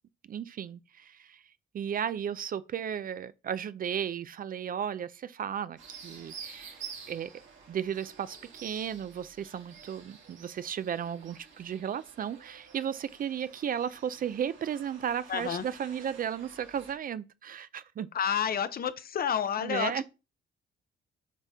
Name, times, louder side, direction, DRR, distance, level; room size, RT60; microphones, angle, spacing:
voice 1, 0.3-1.4 1.7-6.8 7.1-7.3 7.7-18.1 19.6-20.0, right 8 dB, 45° right, 0.4 m, -34 dB
sound 1, 5.8-16.9, right 6 dB, 75° right, 2.6 m, -50 dB
voice 2, 15.3-15.6 18.1-20.0, left 8 dB, 50° left, 0.7 m, -30 dB
7.4 x 4.1 x 3.5 m
cardioid pair, 90°, 20 cm